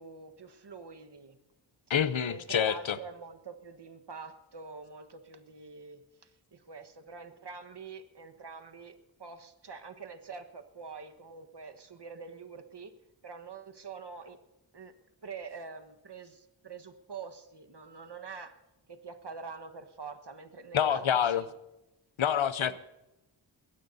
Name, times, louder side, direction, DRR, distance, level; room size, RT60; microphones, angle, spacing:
voice 1, 0.0-1.4 2.3-12.9 13.2-14.4 14.7-14.9 15.2-18.6 18.9-21.5 22.6-22.8, right 5 dB, 60° right, 7 dB, 1.4 m, -45 dB
voice 2, 1.9-3.0 20.7-21.4 22.2-22.8, left 8 dB, 85° left, 15 dB, 0.7 m, -27 dB
21.0 x 16.5 x 2.7 m, 0.95 s
wide cardioid pair, 40°, 46 cm